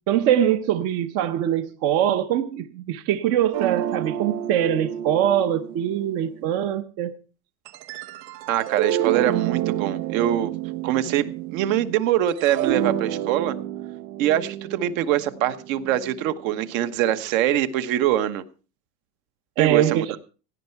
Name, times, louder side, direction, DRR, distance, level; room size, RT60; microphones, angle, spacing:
voice 1, 0.1-7.2 19.6-20.0, right 10 dB, 35° right, 11 dB, 0.7 m, -23 dB
sound 1, 3.5-6.7 7.7-12.0 12.3-16.5, right 12 dB, 85° right, 1.0 m, -29 dB
voice 2, 8.5-10.5 10.8-13.6 14.2-18.4 19.6-20.2, right 11 dB, 55° right, 11 dB, 1.3 m, -23 dB
16.5 x 9.8 x 4.6 m, 0.36 s
supercardioid pair, 170°, 48 cm